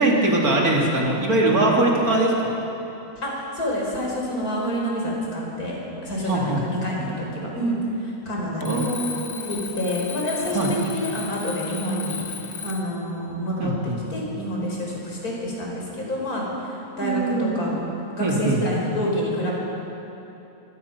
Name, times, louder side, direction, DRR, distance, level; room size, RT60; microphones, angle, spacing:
voice 1, 0.0-2.5 6.3-6.6 8.6-9.6 10.5-10.7 13.6-14.0 17.0-17.8 18.2-18.6, right 2 dB, 70° right, -2 dB, 3.4 m, -22 dB
voice 2, 3.2-8.9 9.4-12.2 12.6-13.7 14.1-17.7 18.2-19.5, equal, 70° left, -3 dB, 5.0 m, -28 dB
Alarm, 8.6-13.0, left 6 dB, 45° left, 0.9 m, -35 dB
23.5 x 18.5 x 5.9 m, 3.0 s
omnidirectional pair, 1.6 m